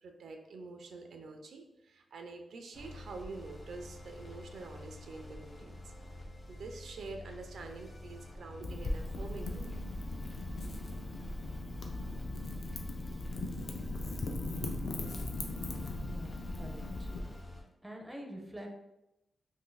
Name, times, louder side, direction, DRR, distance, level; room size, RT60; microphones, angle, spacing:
voice 1, 0.0-5.8 6.5-9.8 13.6-13.7, right 3 dB, 75° right, 4 dB, 0.4 m, -46 dB
sound 1, 2.7-17.6, left 1 dB, 30° left, 0.7 m, -49 dB
Wind / Fire, 8.6-17.2, left 2 dB, 55° left, 0.4 m, -38 dB
voice 2, 16.0-17.1 17.8-18.8, equal, 5° right, 1 dB, 0.4 m, -46 dB
2.6 x 2.5 x 3.7 m, 0.91 s
wide cardioid pair, 135°, 0 cm